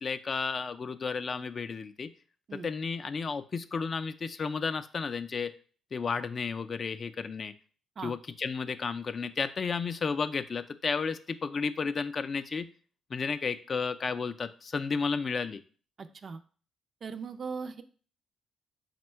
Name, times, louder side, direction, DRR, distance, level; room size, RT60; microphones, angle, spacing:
voice 1, 0.0-2.1 2.5-5.5 5.9-7.5 8.0-12.7 13.1-15.6, left 5 dB, 40° left, 11 dB, 0.3 m, -32 dB
voice 2, 16.0-16.4 17.0-17.8, right 5 dB, 45° right, 10 dB, 0.4 m, -39 dB
4.3 x 2.2 x 4.4 m, 0.41 s
cardioid pair, 90°, 0 cm